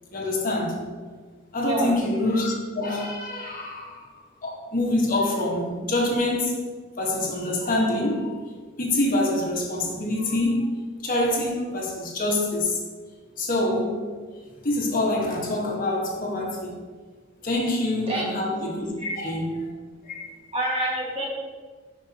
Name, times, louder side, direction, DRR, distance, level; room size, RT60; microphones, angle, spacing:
voice 1, 0.1-0.8 1.5-6.6 7.0-8.4 8.8-10.7 11.0-12.8 13.4-14.0 14.6-16.8 17.4-18.9 19.2-19.7 20.0-20.3, left 1 dB, 45° left, 1.4 m, -25 dB
voice 2, 1.6-1.9 18.1-18.3 19.0-19.2 20.5-21.2, right 1 dB, 30° right, 1.7 m, -27 dB
10.0 x 5.2 x 2.9 m
head